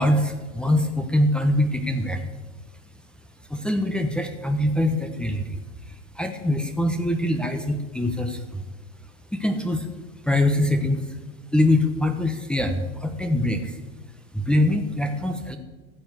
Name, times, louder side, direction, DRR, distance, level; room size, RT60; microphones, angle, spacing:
voice 1, 0.0-2.2 3.5-5.6 6.2-8.6 9.3-9.9 10.3-11.0 11.5-13.8 14.3-15.6, left 1 dB, 5° left, 4 dB, 1.0 m, -23 dB
14.0 x 7.1 x 8.1 m, 1.2 s
supercardioid pair, 125°, 36 cm